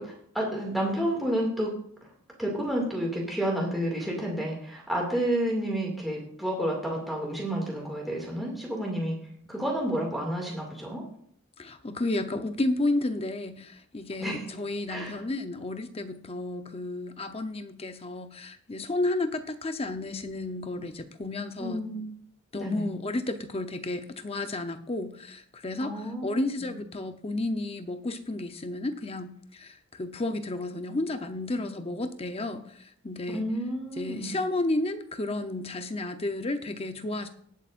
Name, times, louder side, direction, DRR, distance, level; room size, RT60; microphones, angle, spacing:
voice 1, 0.0-1.7 2.4-9.1 9.5-11.0 14.2-14.5 14.9-15.2 21.6-22.0 22.6-22.9 25.8-26.7 33.3-34.3, right 1 dB, ahead, -3 dB, 2.3 m, -30 dB
voice 2, 11.6-21.8 22.5-33.5 34.0-37.3, left 2 dB, 25° left, 8 dB, 0.8 m, -32 dB
19.0 x 8.1 x 2.6 m, 0.64 s
head